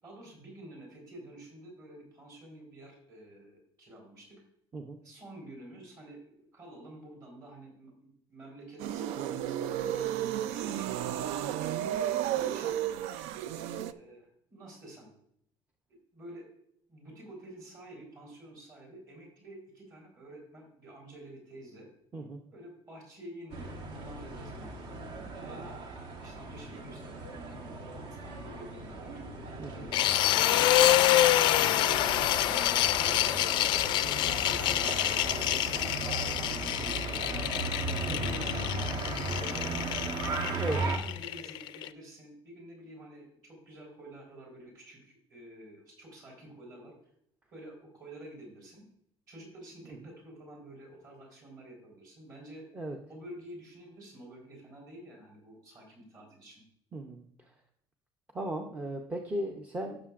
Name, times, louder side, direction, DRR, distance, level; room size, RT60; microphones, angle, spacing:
voice 1, 0.0-4.4 5.0-11.0 11.7-12.9 13.5-15.1 15.9-16.5 16.9-21.9 22.5-25.7 26.2-29.2 29.7-31.2 31.6-34.9 35.3-35.9 36.2-40.3 40.7-46.9 47.5-48.8 49.3-52.7 53.1-56.6, right 1 dB, 40° right, 0 dB, 4.1 m, -49 dB
sound 1, 8.8-13.9, right 11 dB, 85° right, 0.4 m, -32 dB
sound 2, 23.5-41.0, right 2 dB, 55° right, 1.3 m, -37 dB
sound 3, 29.9-41.9, left 14 dB, 50° left, 0.4 m, -27 dB
voice 2, 56.9-57.2 58.3-60.1, right 1 dB, 15° right, 3 dB, 0.6 m, -36 dB
15.5 x 6.6 x 2.5 m, 0.70 s
cardioid pair, 180°, 10 cm